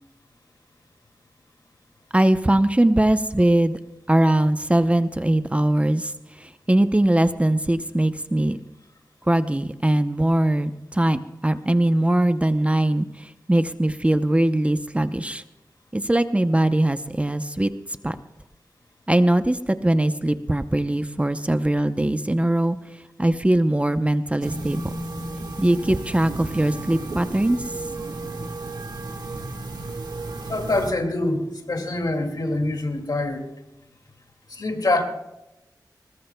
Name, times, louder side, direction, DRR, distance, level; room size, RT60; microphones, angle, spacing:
voice 1, 2.1-3.8 4.1-6.1 6.4-8.6 9.3-15.4 15.9-17.7 18.0-18.2 19.1-22.8 23.2-24.9 25.6-27.6, right 1 dB, 15° right, 10 dB, 0.7 m, -21 dB
sound 1, 24.4-30.9, right 2 dB, 75° right, 1.7 m, -33 dB
voice 2, 30.5-33.5 34.5-35.0, left 2 dB, 65° left, 4 dB, 2.3 m, -25 dB
21.0 x 20.5 x 2.3 m, 0.94 s
wide cardioid pair, 65°, 7 cm